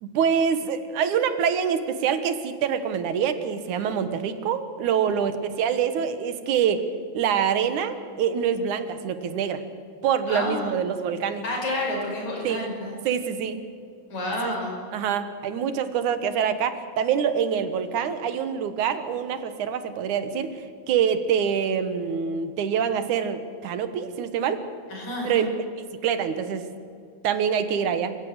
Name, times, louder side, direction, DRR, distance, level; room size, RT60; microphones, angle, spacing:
voice 1, 0.0-6.8 7.1-9.6 10.0-11.4 12.4-12.7 13.0-13.6 14.4-14.5 14.9-24.6 25.2-25.5 26.0-26.7 27.2-28.2, right 7 dB, 85° right, 11 dB, 2.8 m, -25 dB
voice 2, 10.3-10.7 11.4-12.9 14.1-14.7 24.9-25.5, left 1 dB, 75° left, -1 dB, 6.7 m, -30 dB
27.5 x 15.0 x 8.0 m, 2.3 s
omnidirectional pair, 3.4 m